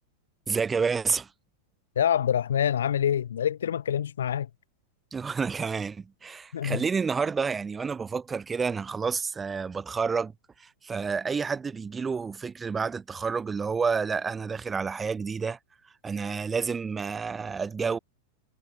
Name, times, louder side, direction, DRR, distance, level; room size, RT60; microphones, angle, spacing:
voice 1, 0.5-1.3 5.1-10.3 10.6-15.6 16.0-18.0, right 5 dB, 15° right, 0.8 m, -29 dB
voice 2, 2.0-4.5 6.5-6.8, left 9 dB, 70° left, 1.9 m, -26 dB
figure-of-eight pair, 95°, 0 cm